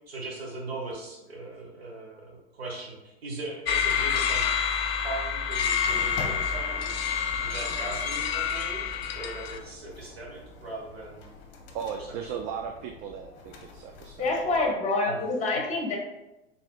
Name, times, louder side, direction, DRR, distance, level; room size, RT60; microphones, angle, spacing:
voice 1, 0.1-4.5 5.0-7.1 7.4-11.3 11.9-12.4 15.0-15.2 15.5-15.7, right 2 dB, 90° right, -2 dB, 1.3 m, -39 dB
sound 1, 3.6-9.6, left 7 dB, 80° left, 0.5 m, -28 dB
sound 2, 5.8-14.7, left 4 dB, 40° left, 1.0 m, -46 dB
voice 2, 11.7-14.7, right 7 dB, 45° right, 4 dB, 0.4 m, -37 dB
voice 3, 14.2-16.0, left 2 dB, 25° left, -1 dB, 1.3 m, -26 dB
4.0 x 3.7 x 2.3 m, 0.96 s
hypercardioid pair, 95°, 30 cm